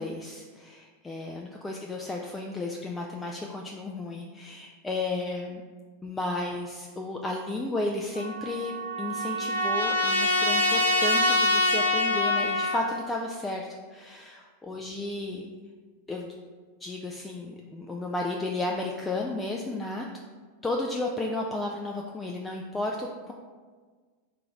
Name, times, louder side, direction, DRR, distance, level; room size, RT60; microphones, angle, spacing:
voice 1, 0.0-5.6 6.0-15.5 16.1-16.3 16.8-20.1 20.6-23.3, left 2 dB, 10° left, 0 dB, 0.3 m, -33 dB
Trumpet, 8.2-12.9, left 1 dB, 75° right, 0.7 m, -25 dB
3.8 x 2.5 x 4.5 m, 1.5 s
figure-of-eight pair, 90°, 0 cm